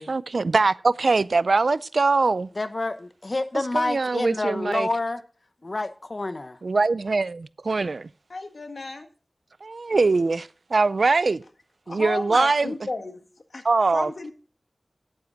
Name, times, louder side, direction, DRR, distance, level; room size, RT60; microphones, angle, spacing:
voice 1, 0.0-2.5 3.7-4.9 6.6-8.1 9.6-11.4 11.9-12.7 13.6-14.3, right 3 dB, 80° right, 0.4 m, -22 dB
voice 2, 2.6-5.2 5.6-6.6, left 2 dB, 50° left, 1.0 m, -28 dB
voice 3, 8.3-9.1 11.9-13.2 13.5-13.6 13.9-14.3, left 3 dB, 75° left, 1.5 m, -33 dB
10.5 x 9.4 x 4.0 m
wide cardioid pair, 50°, 0 cm